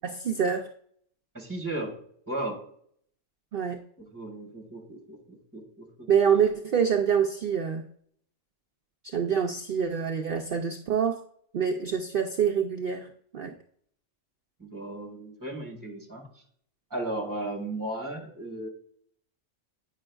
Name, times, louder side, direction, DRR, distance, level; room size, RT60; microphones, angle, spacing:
voice 1, 0.0-0.7 3.5-3.8 6.1-7.9 9.0-11.2 11.5-13.5, right 7 dB, 60° right, 4 dB, 0.6 m, -26 dB
voice 2, 1.3-1.9 2.3-2.6 4.0-6.1 14.6-16.3 16.9-18.7, right 1 dB, 15° right, 0 dB, 1.5 m, -35 dB
8.7 x 5.6 x 2.3 m, 0.64 s
omnidirectional pair, 1.4 m